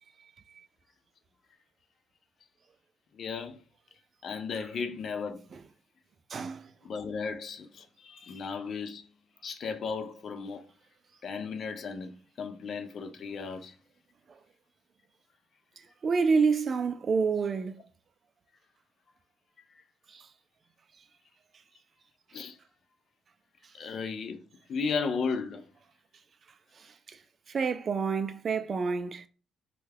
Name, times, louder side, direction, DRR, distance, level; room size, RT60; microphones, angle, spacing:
voice 1, 3.1-3.6 4.2-5.4 6.8-9.1 9.4-10.6 11.2-13.8 19.7-19.8 22.3-22.6 23.7-24.4 24.7-25.7, left 5 dB, 50° left, 0.4 m, -35 dB
voice 2, 6.3-6.7 16.0-17.7 20.1-20.2 27.5-29.3, right 5 dB, 40° right, 0.3 m, -27 dB
3.2 x 2.2 x 3.3 m
cardioid pair, 125°, 0 cm